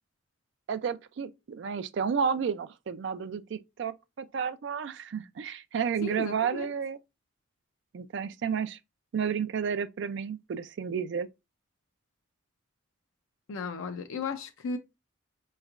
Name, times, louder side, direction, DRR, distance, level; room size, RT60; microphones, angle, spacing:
voice 1, 0.7-7.0 7.9-8.8 9.1-11.3, right 6 dB, 60° right, 0.3 m, -31 dB
voice 2, 6.0-6.7 13.5-14.8, left 4 dB, 75° left, 0.4 m, -35 dB
4.3 x 3.1 x 2.4 m
head